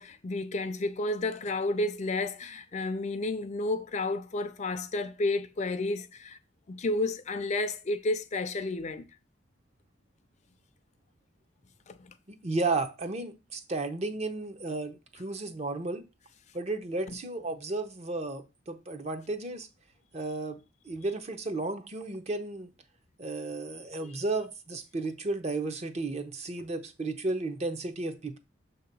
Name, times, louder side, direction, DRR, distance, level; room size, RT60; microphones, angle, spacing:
voice 1, 0.0-6.4 6.7-9.0 11.9-12.1 17.1-17.2 24.0-24.2, left 2 dB, 40° left, 0.5 m, -31 dB
voice 2, 12.3-16.0 16.5-19.7 20.1-20.6 20.8-22.7 23.2-28.4, right 3 dB, 35° right, 0.7 m, -33 dB
6.5 x 2.8 x 5.3 m
head